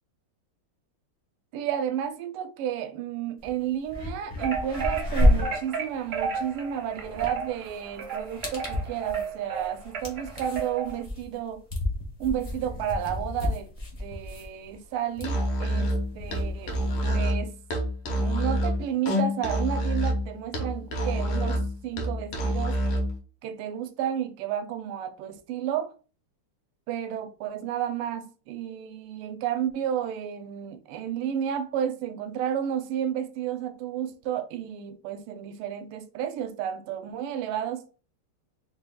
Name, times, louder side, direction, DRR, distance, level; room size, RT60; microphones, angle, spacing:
voice 1, 1.5-11.7 12.2-13.7 14.0-16.8 17.0-17.6 18.1-22.8 23.4-25.9 26.9-37.9, right 9 dB, 85° right, 1.5 m, -32 dB
sound 1, 3.4-3.5 3.8-17.2, left 1 dB, 60° left, 0.3 m, -31 dB
sound 2, 4.4-11.0, right 5 dB, 50° right, 0.7 m, -33 dB
Musical instrument, 15.2-23.1, equal, 85° left, 1.8 m, -27 dB
4.1 x 2.2 x 3.5 m
omnidirectional pair, 2.4 m